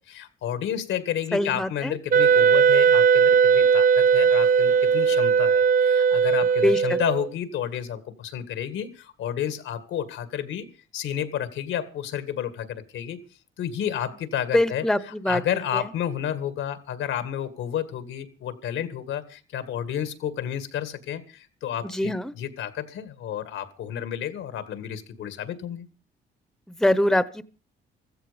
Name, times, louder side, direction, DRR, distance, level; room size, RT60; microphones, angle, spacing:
voice 1, 0.1-10.7 10.9-13.2 13.6-14.8 15.3-25.9, left 9 dB, 85° left, 12 dB, 2.0 m, -31 dB
voice 2, 1.3-2.0 6.6-7.0 14.5-15.4 15.7-15.9 21.8-22.3 26.8-27.4, left 1 dB, ahead, 15 dB, 1.0 m, -23 dB
Wind instrument woodwind instrument, 2.1-7.3, right 6 dB, 45° right, 0.8 m, -18 dB
15.0 x 14.5 x 5.2 m, 0.36 s
cardioid pair, 90°, 20 cm